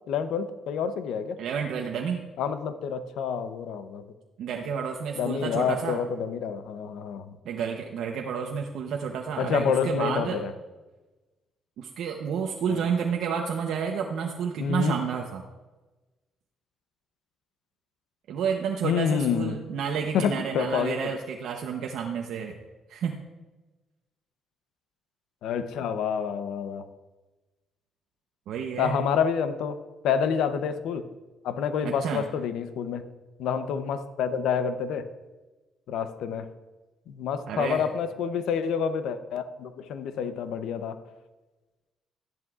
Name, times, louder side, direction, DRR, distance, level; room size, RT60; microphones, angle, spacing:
voice 1, 0.1-1.4 2.4-4.1 5.2-7.4 9.4-10.5 12.7-12.9 14.6-15.0 18.8-19.6 20.1-21.1 25.4-26.8 28.8-29.8 30.0-31.1 31.4-33.0 33.4-35.1 35.9-36.5 37.1-41.0, left 7 dB, 85° left, 10 dB, 0.7 m, -28 dB
voice 2, 1.4-2.3 4.4-6.0 7.4-10.4 11.8-15.4 18.3-22.6 22.9-23.2 28.5-29.0 31.8-32.2 37.5-37.8, right 6 dB, 80° right, 2 dB, 0.8 m, -30 dB
13.5 x 10.5 x 2.4 m, 1.2 s
cardioid pair, 90°, 0 cm